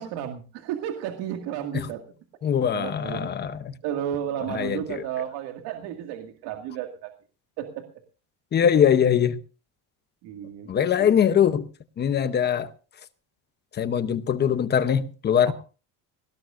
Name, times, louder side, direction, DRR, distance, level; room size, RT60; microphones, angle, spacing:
voice 1, 0.0-2.0 2.7-3.3 3.8-7.1 7.6-7.8 10.2-11.1 15.5-15.6, right 10 dB, 75° right, 2.1 m, -33 dB
voice 2, 2.4-3.6 4.5-5.0 8.5-9.4 10.7-11.7 12.0-12.7 13.8-15.5, left 8 dB, 25° left, 0.8 m, -22 dB
19.5 x 17.5 x 2.5 m
cardioid pair, 175°, 39 cm